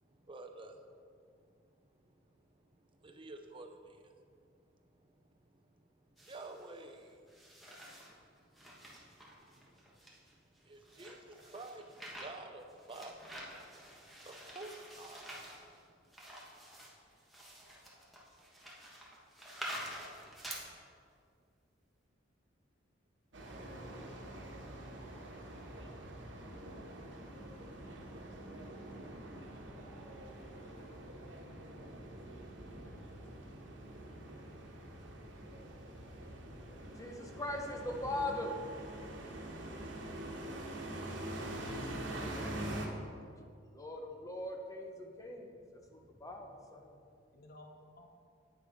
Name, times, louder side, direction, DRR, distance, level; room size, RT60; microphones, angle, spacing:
voice 1, 0.1-7.4 7.8-8.0 8.4-10.0 10.6-13.3 13.9-16.1, right 2 dB, 30° right, 5 dB, 0.7 m, -52 dB
sound 1, 6.2-6.8 7.3-8.2 8.5-20.6, equal, ahead, 1.4 m, -49 dB
sound 2, 23.3-42.9, right 1 dB, 70° right, 1.2 m, -45 dB
voice 2, 37.0-38.6 43.7-47.0, left 1 dB, 20° left, 2 dB, 0.8 m, -41 dB
voice 3, 41.0-42.7 47.3-48.1, left 1 dB, 50° left, 3 dB, 0.8 m, -52 dB
9.2 x 6.6 x 5.0 m, 2.3 s
head